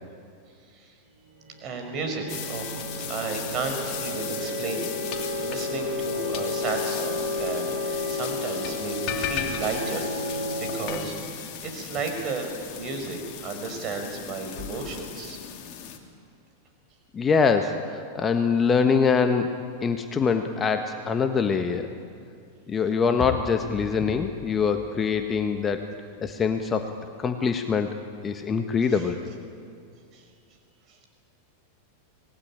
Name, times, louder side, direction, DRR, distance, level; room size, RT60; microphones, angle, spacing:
sound 1, 1.3-10.9, left 2 dB, 60° right, 7.3 m, -32 dB
voice 1, 1.6-5.1 5.4-11.2 11.6-15.4 28.9-29.0 30.1-30.2 30.9-31.0, right 4 dB, 35° right, 4 dB, 5.4 m, -33 dB
sound 2, 2.3-16.0, left 9 dB, 40° left, 2.8 m, -36 dB
voice 2, 17.1-21.9 22.7-25.8 26.2-26.9 27.2-27.9 28.2-29.2, left 5 dB, 20° left, 6 dB, 1.4 m, -24 dB
25.5 x 19.5 x 10.0 m, 2.4 s
figure-of-eight pair, 90°, 0 cm